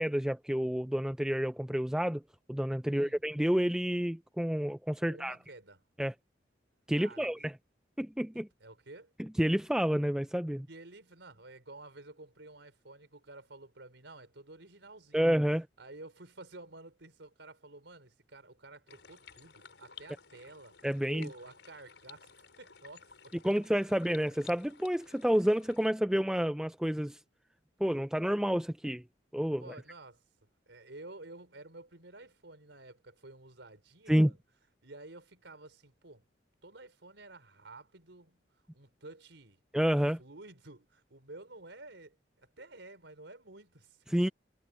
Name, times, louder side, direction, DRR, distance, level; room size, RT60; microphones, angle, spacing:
voice 1, 0.0-2.2 2.5-5.4 6.0-6.1 6.9-7.5 8.0-8.5 9.2-10.7 15.1-15.7 20.8-21.3 23.4-27.2 27.8-29.0 29.3-29.7 34.1-34.3 39.7-40.2 44.1-44.3, equal, 5° right, 0.4 m, -29 dB
voice 2, 2.9-3.2 5.0-5.8 7.0-7.4 8.6-9.1 10.7-15.3 15.8-22.3 22.6-23.4 29.6-30.2 30.7-34.4 34.8-36.2 36.6-38.4 38.7-39.6 40.2-44.3, right 2 dB, 80° right, 4.1 m, -51 dB
sound 1, 18.9-25.9, left 7 dB, 85° left, 4.6 m, -55 dB
head